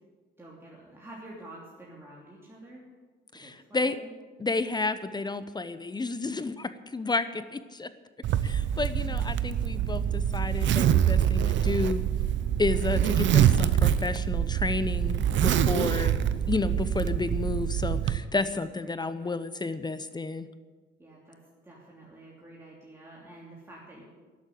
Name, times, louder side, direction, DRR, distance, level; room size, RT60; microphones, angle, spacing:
voice 1, 0.4-2.9 3.3-4.1 8.6-9.5 18.8-19.3 21.0-21.4 21.6-24.0, right 1 dB, 10° right, -5 dB, 3.0 m, -49 dB
voice 2, 3.3-4.0 4.4-7.9 8.4-12.1 12.6-16.2 16.5-20.5, left 3 dB, 20° left, 13 dB, 0.7 m, -31 dB
Zipper (clothing), 8.2-18.2, right 10 dB, 70° right, 0.7 m, -25 dB
11.5 x 8.5 x 9.3 m, 1.4 s
cardioid pair, 90°, 20 cm